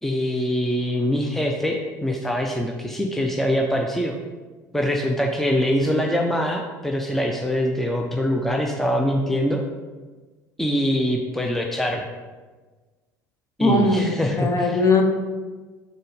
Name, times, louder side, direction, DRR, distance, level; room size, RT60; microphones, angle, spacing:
voice 1, 0.0-4.1 4.7-9.6 10.6-12.0 13.6-14.8, equal, 5° left, 2 dB, 0.7 m, -23 dB
voice 2, 13.6-15.0, left 2 dB, 35° left, 4 dB, 1.1 m, -20 dB
6.5 x 3.9 x 5.2 m, 1.3 s
hypercardioid pair, 65°, 10 cm